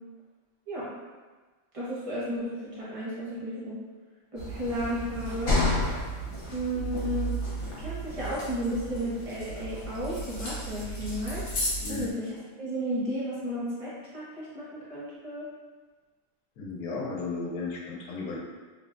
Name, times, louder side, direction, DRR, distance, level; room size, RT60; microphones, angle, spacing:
voice 1, 1.7-3.8 4.3-5.6 6.5-7.4 7.7-11.4 11.9-15.5, equal, 45° right, -8 dB, 0.4 m, -33 dB
sound 1, 4.4-12.1, equal, 65° left, 1.1 m, -32 dB
voice 2, 16.6-18.4, left 4 dB, 85° left, -3 dB, 1.1 m, -35 dB
3.1 x 2.1 x 2.4 m, 1.3 s
omnidirectional pair, 1.6 m